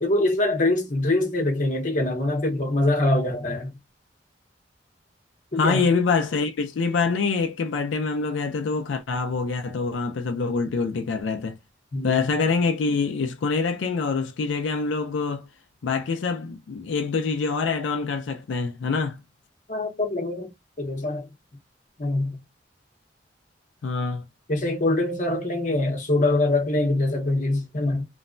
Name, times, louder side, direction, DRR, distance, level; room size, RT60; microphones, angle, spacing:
voice 1, 0.0-3.7 5.5-5.9 11.9-12.2 19.7-20.5 20.8-21.3 22.0-22.4 24.5-28.0, left 2 dB, 45° left, 0.8 m, -24 dB
voice 2, 5.6-11.6 12.0-15.5 15.8-19.2 23.8-24.2, left 4 dB, 85° left, 0.4 m, -25 dB
3.0 x 2.1 x 2.5 m
head